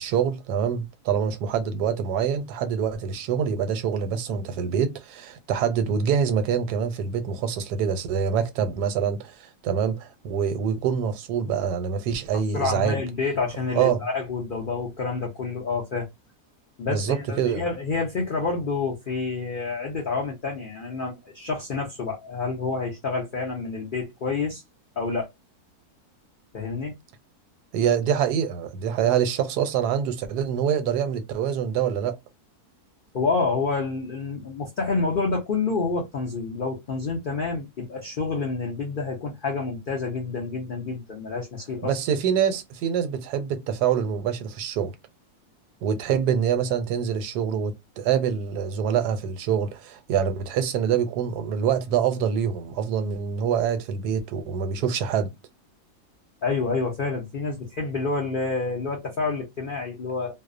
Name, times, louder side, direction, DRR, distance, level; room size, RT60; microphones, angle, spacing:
voice 1, 0.0-13.0 13.7-14.0 16.9-17.6 27.7-32.2 41.8-44.9 45.8-55.3, right 8 dB, 85° right, 1.1 m, -25 dB
voice 2, 12.3-16.1 16.8-24.6 25.0-25.3 26.5-26.9 33.1-42.0 56.4-60.3, left 4 dB, 70° left, 0.5 m, -28 dB
2.6 x 2.0 x 2.4 m
omnidirectional pair, 1.7 m